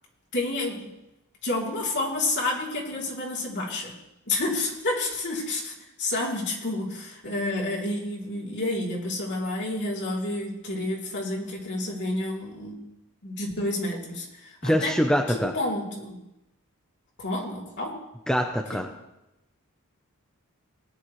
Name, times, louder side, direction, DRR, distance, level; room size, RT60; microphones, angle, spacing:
voice 1, 0.3-0.9 1.4-3.9 4.3-12.8 13.2-14.9 15.5-16.2 17.2-18.0, left 2 dB, 50° left, -2 dB, 3.0 m, -29 dB
voice 2, 14.6-15.5 18.3-18.9, equal, 5° left, 3 dB, 0.6 m, -24 dB
19.5 x 10.5 x 3.2 m, 0.94 s
head